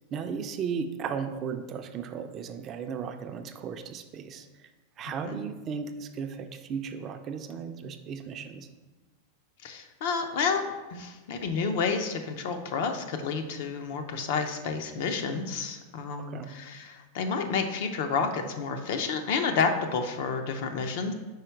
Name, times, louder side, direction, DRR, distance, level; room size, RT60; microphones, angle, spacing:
voice 1, 0.1-4.7 5.0-8.7 16.2-16.6, right 6 dB, 30° right, 7 dB, 0.4 m, -35 dB
voice 2, 9.6-10.6 10.9-21.1, left 5 dB, 65° left, 6 dB, 0.7 m, -30 dB
4.8 x 4.6 x 4.5 m, 1.2 s
supercardioid pair, 145°, 0 cm